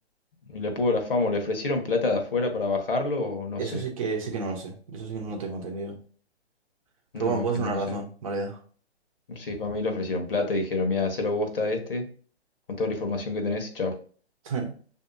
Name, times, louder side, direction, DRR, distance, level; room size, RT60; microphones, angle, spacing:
voice 1, 0.5-3.8 7.1-8.0 9.3-12.1 12.7-13.9, left 3 dB, 55° left, 4 dB, 1.2 m, -27 dB
voice 2, 3.6-6.0 7.2-8.6 14.4-14.7, right 4 dB, 30° right, 1 dB, 0.9 m, -30 dB
6.7 x 2.8 x 2.6 m, 0.44 s
figure-of-eight pair, 130°, 34 cm